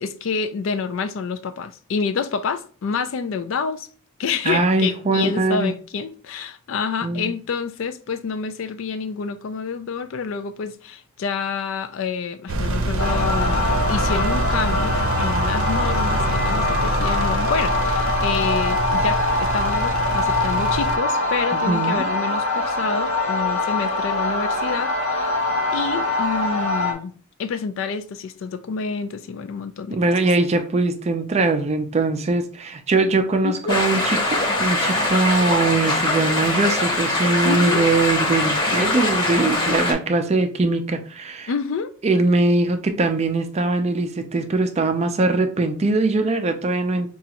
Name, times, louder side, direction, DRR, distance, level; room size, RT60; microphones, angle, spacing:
voice 1, 0.0-3.9 4.2-25.4 25.7-27.1 27.4-30.0 33.4-33.8 37.4-37.9 41.5-41.9, left 5 dB, 60° left, 0.3 m, -28 dB
voice 2, 4.5-5.7 7.0-7.3 21.5-22.1 29.9-41.5 42.0-47.1, right 3 dB, 30° right, 0.4 m, -21 dB
Engine, 12.5-21.0, right 2 dB, 75° right, 0.6 m, -25 dB
sound 1, 13.0-26.9, left 2 dB, 80° left, 0.8 m, -23 dB
sound 2, 33.7-39.9, left 2 dB, 20° left, 0.8 m, -22 dB
4.9 x 2.4 x 2.8 m
head